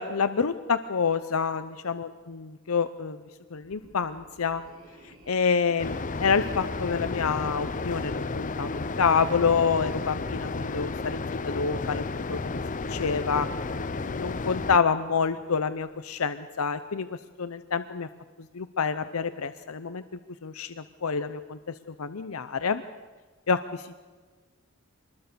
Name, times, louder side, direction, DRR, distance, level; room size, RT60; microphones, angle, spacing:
voice 1, 0.0-3.2 3.5-4.6 5.0-13.5 14.0-18.1 18.5-20.0 20.4-22.8 23.5-24.0, left 5 dB, 80° left, 11 dB, 0.7 m, -28 dB
sound 1, 3.6-16.1, right 1 dB, 75° right, 6.0 m, -54 dB
sound 2, 5.8-14.8, left 3 dB, 35° left, 0.6 m, -32 dB
25.0 x 20.5 x 6.8 m, 1.4 s
head